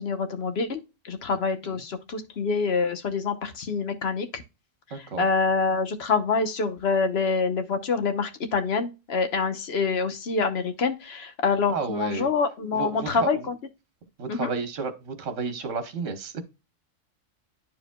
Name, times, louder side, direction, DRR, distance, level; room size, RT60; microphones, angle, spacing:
voice 1, 0.0-4.4 4.9-13.5 14.3-14.5, left 4 dB, 55° left, 1.1 m, -26 dB
voice 2, 4.9-5.3 11.7-12.3 12.7-13.4 14.2-16.4, right 4 dB, 70° right, 1.4 m, -31 dB
10.5 x 4.9 x 2.2 m
omnidirectional pair, 1.3 m